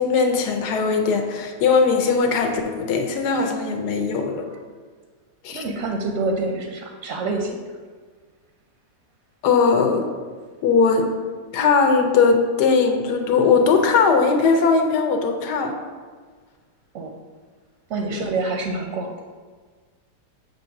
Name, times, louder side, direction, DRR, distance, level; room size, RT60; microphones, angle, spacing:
voice 1, 0.0-4.4 5.4-5.6 9.4-10.0 10.6-11.1 11.5-15.7 18.1-18.2, left 5 dB, 75° left, 5 dB, 1.3 m, -19 dB
voice 2, 5.5-7.6 16.9-17.1 17.9-19.2, right 3 dB, 65° right, 3 dB, 0.8 m, -26 dB
7.7 x 2.7 x 5.7 m, 1.5 s
omnidirectional pair, 1.8 m